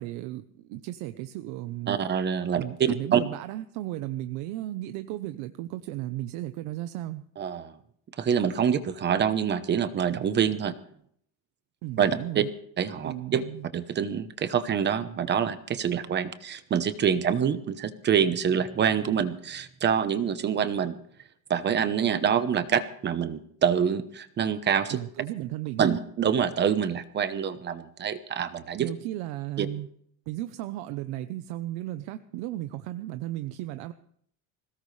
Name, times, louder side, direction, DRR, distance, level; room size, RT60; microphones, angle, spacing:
voice 1, 0.0-2.0 2.5-7.2 11.8-12.5 13.0-13.7 24.9-25.9 28.8-29.9 30.3-33.9, right 15 dB, 85° right, 10 dB, 1.0 m, -35 dB
voice 2, 1.9-3.2 7.4-7.7 8.2-10.7 12.0-12.4 12.8-13.4 13.7-21.0 21.5-25.0 25.8-28.9 29.6-29.7, right 8 dB, 30° right, 11 dB, 1.0 m, -26 dB
21.5 x 18.0 x 3.3 m, 0.64 s
cardioid pair, 170°, 38 cm